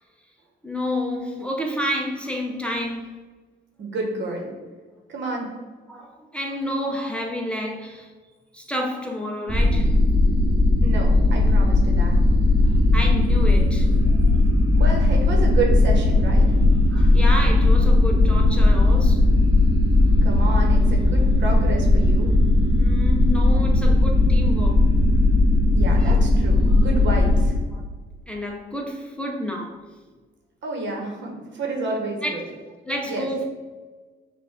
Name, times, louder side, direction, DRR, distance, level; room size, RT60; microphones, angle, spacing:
voice 1, 0.6-3.1 5.9-8.1 8.5-9.9 12.7-14.4 16.9-19.3 22.8-24.9 26.0-26.2 26.7-26.8 27.7-27.9 28.3-29.8 32.2-32.3 32.9-33.4, left 1 dB, 5° left, -1 dB, 0.6 m, -30 dB
voice 2, 3.8-4.5 5.1-5.5 10.8-12.1 14.8-16.6 20.2-22.3 25.7-27.6 30.6-32.4 33.1-33.3, right 3 dB, 65° right, 1 dB, 1.1 m, -30 dB
sound 1, 9.5-27.5, left 2 dB, 25° right, 0.8 m, -17 dB
5.5 x 2.5 x 3.6 m, 1.3 s
cardioid pair, 90°, 20 cm